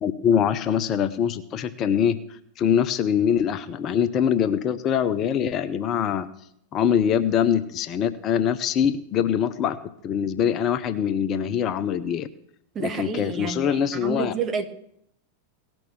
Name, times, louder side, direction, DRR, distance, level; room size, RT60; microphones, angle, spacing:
voice 1, 0.0-6.3 6.7-9.8 10.0-12.3 12.8-14.3, left 8 dB, 35° left, 13 dB, 0.7 m, -23 dB
voice 2, 12.7-14.7, right 5 dB, 25° right, 8 dB, 1.2 m, -29 dB
17.5 x 6.2 x 8.9 m, 0.74 s
figure-of-eight pair, 90°, 0 cm